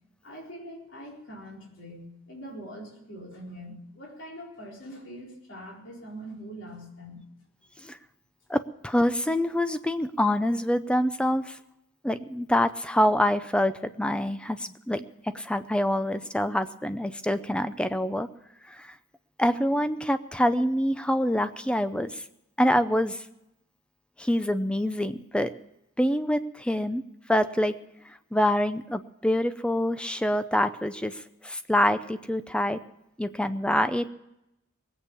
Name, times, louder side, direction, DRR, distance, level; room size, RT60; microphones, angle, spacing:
voice 1, 0.2-7.2, equal, 55° left, -2 dB, 4.4 m, -43 dB
voice 2, 8.5-11.6 12.0-18.3 18.7-18.9 19.4-22.2 22.6-23.2 24.2-25.5 26.0-27.0 27.3-27.8 28.3-32.8 33.2-34.1, left 1 dB, 5° left, 11 dB, 0.5 m, -26 dB
20.0 x 8.5 x 7.0 m, 0.85 s
head